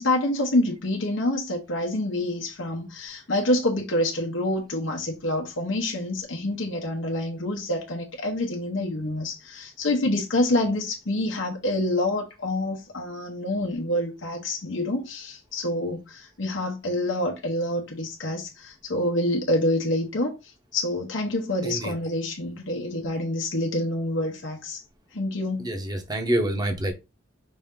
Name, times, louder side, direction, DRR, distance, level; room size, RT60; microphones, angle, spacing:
voice 1, 0.0-20.3 20.7-24.8 25.1-25.7, left 1 dB, 70° left, 0.9 m, -27 dB
voice 2, 21.6-21.9 25.6-26.9, right 1 dB, 20° right, 0.9 m, -27 dB
5.3 x 2.7 x 3.6 m
head